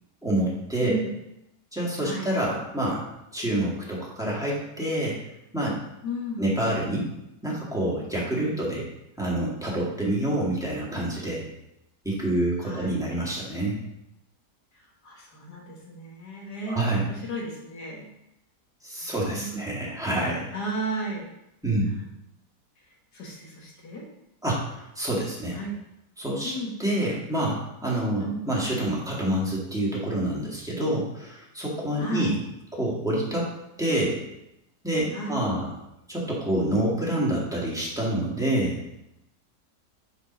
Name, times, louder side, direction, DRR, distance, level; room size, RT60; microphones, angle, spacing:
voice 1, 0.2-1.0 1.7-3.1 3.3-5.2 5.5-5.8 6.4-7.1 7.4-8.8 9.2-11.4 12.0-13.8 16.7-17.1 18.8-20.5 21.6-21.9 24.4-25.6 26.2-26.5 26.8-32.4 32.7-33.5 33.8-34.2 34.8-35.7 36.1-38.8, right 1 dB, ahead, -6 dB, 2.0 m, -27 dB
voice 2, 6.0-6.4 12.6-13.0 15.0-18.1 19.0-19.6 20.5-21.3 21.9-22.0 23.1-24.0 25.5-25.7 26.4-26.7 28.2-28.4 32.0-32.4 35.1-35.4, right 1 dB, 75° left, -2 dB, 2.2 m, -34 dB
5.4 x 5.3 x 5.5 m, 0.85 s
omnidirectional pair, 1.7 m